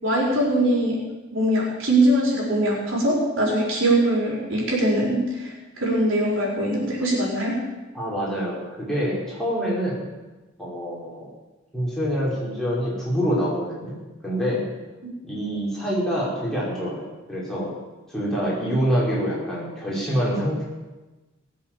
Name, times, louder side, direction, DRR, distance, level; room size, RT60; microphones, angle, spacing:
voice 1, 0.0-1.0 1.3-7.6, right 1 dB, 65° right, -4 dB, 5.1 m, -22 dB
voice 2, 7.9-10.0 10.6-11.3 11.7-14.0 14.2-14.7 15.3-17.7 18.1-20.6, equal, ahead, -7 dB, 5.1 m, -26 dB
20.0 x 7.8 x 7.5 m, 1.2 s
head